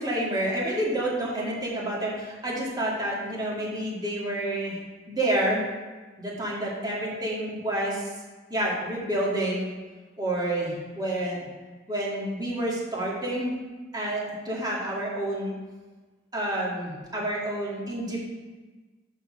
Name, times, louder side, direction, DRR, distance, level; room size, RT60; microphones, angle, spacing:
voice 1, 0.0-4.8 5.1-5.6 6.2-8.1 8.5-9.7 10.2-11.4 11.9-13.5 13.9-15.5 16.3-18.2, right 1 dB, 20° right, -5 dB, 2.1 m, -29 dB
5.8 x 5.5 x 6.1 m, 1.3 s
head